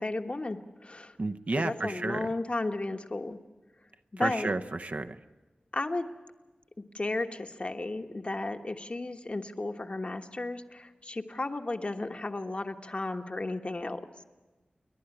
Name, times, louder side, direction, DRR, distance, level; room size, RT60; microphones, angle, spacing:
voice 1, 0.0-1.1 1.6-3.4 4.1-4.6 5.7-6.1 6.9-14.1, left 2 dB, 40° left, 5 dB, 1.3 m, -34 dB
voice 2, 1.2-2.3 4.2-5.2, right 2 dB, 55° right, 8 dB, 0.9 m, -31 dB
29.0 x 11.5 x 9.9 m, 1.2 s
wide cardioid pair, 75°, 3 cm